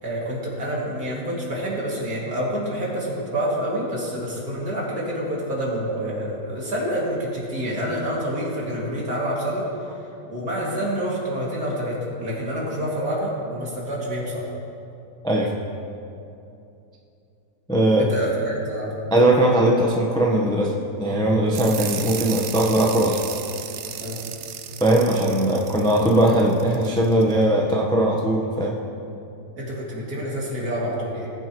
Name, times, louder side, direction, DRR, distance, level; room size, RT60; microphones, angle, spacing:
voice 1, 0.0-9.7 10.3-14.5 18.0-18.9 24.0-24.4 29.5-31.3, equal, 60° right, -5 dB, 2.9 m, -27 dB
voice 2, 17.7-18.1 19.1-23.2 24.8-28.8, right 1 dB, 5° left, -1 dB, 0.7 m, -19 dB
sound 1, 21.5-27.3, right 9 dB, 85° right, 0.6 m, -35 dB
19.5 x 9.3 x 3.1 m, 2.7 s
omnidirectional pair, 1.9 m